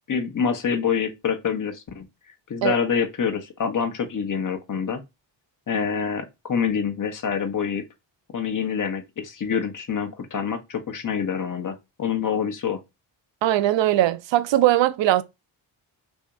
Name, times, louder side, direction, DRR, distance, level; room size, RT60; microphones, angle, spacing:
voice 1, 0.1-2.1 2.5-5.0 5.7-7.8 8.3-12.8, left 7 dB, 40° left, 0.9 m, -26 dB
voice 2, 13.4-15.2, right 13 dB, 60° right, 0.5 m, -20 dB
2.9 x 2.6 x 3.4 m
supercardioid pair, 50°, 50 cm